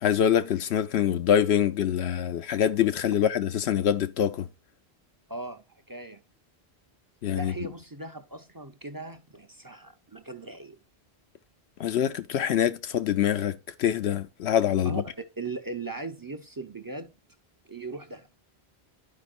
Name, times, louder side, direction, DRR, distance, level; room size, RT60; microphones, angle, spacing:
voice 1, 0.0-4.5 7.2-7.5 11.8-15.0, left 9 dB, 85° left, 1.0 m, -25 dB
voice 2, 5.3-6.2 7.4-10.8 14.8-17.1 17.6-18.3, right 3 dB, 25° right, 0.6 m, -39 dB
11.5 x 5.2 x 2.4 m
omnidirectional pair, 1.1 m